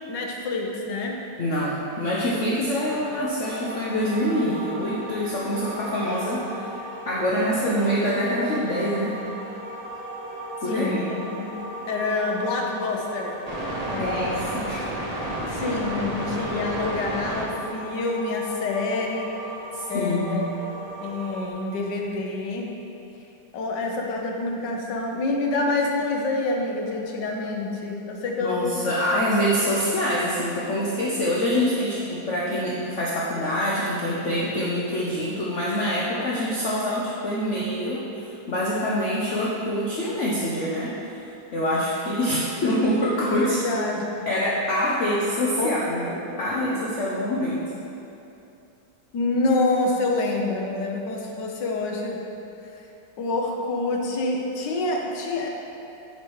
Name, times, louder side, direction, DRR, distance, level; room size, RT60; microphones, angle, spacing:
voice 1, 0.1-1.2 10.7-11.5 11.9-13.4 13.9-14.4 15.5-19.3 19.9-20.4 21.0-22.7 23.5-28.7 43.4-44.0 45.6-45.7 46.3-46.4 46.7-46.8 49.1-52.2 53.2-55.5, left 3 dB, 75° left, 1 dB, 1.5 m, -27 dB
voice 2, 1.4-6.7 7.1-9.2 10.6-11.1 14.0-14.8 15.7-15.8 19.7-20.5 28.4-41.0 41.5-43.6 44.3-47.7, equal, 50° left, -6 dB, 1.0 m, -25 dB
sound 1, 3.4-21.5, right 1 dB, 30° right, 0.7 m, -34 dB
10.0 x 4.8 x 4.7 m, 2.8 s
omnidirectional pair, 2.0 m